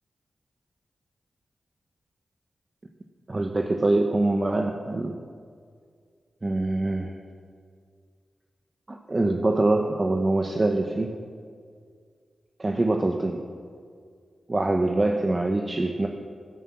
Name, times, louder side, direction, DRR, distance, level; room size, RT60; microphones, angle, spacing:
voice 1, 3.3-5.1 6.4-7.2 8.9-11.1 12.6-13.4 14.5-16.1, right 2 dB, 35° right, 3 dB, 1.0 m, -24 dB
11.5 x 11.0 x 7.3 m, 2.1 s
cardioid pair, 55°, 0 cm